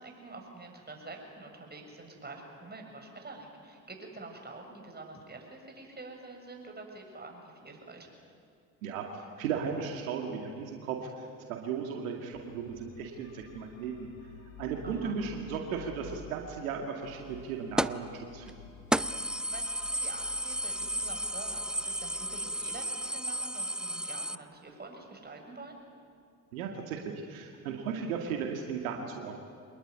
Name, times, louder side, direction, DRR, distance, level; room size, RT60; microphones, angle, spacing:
voice 1, 0.0-8.1 14.8-15.2 19.5-25.8, right 3 dB, 25° right, 2 dB, 6.9 m, -47 dB
voice 2, 8.8-14.1 14.6-18.6 26.5-29.4, right 6 dB, 85° right, 2 dB, 2.3 m, -36 dB
sound 1, 12.3-23.3, left 7 dB, 85° left, 3.9 m, -52 dB
sound 2, 17.8-18.1 18.5-18.6 18.9-24.4, right 1 dB, ahead, 0.6 m, -33 dB
26.0 x 20.5 x 9.6 m, 2.3 s
hypercardioid pair, 65°, 40 cm